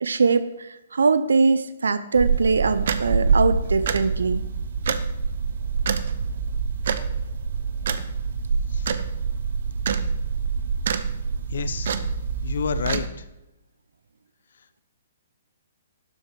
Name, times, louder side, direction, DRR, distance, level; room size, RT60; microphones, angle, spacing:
voice 1, 0.0-4.4, right 4 dB, 85° right, 12 dB, 0.6 m, -22 dB
sound 1, 2.1-13.1, right 5 dB, 65° right, 0.9 m, -26 dB
voice 2, 11.5-11.9 12.4-13.2, left 6 dB, 70° left, 12 dB, 0.7 m, -29 dB
12.0 x 7.9 x 4.7 m, 0.95 s
hypercardioid pair, 145°, 0 cm